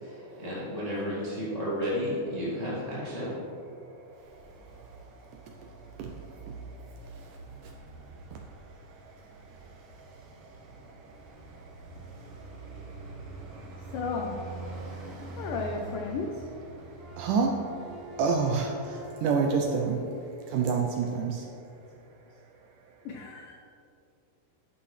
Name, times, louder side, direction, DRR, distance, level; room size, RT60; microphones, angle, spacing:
voice 1, 0.0-3.4, equal, 20° left, -10 dB, 1.0 m, -32 dB
voice 2, 3.9-8.4 8.7-13.9 14.7-15.4 16.8-21.5, right 5 dB, 80° right, 1 dB, 1.9 m, -33 dB
Traffic noise roadway noise, 4.1-19.6, right 3 dB, 60° right, 2.7 m, -45 dB
voice 3, 13.9-14.4 15.4-16.5 18.2-18.4 23.1-23.5, left 4 dB, 75° left, 1 dB, 2.1 m, -34 dB
sound 1, 17.0-21.3, left 3 dB, 25° right, 1.3 m, -45 dB
11.0 x 8.5 x 3.2 m, 2.6 s
omnidirectional pair, 4.3 m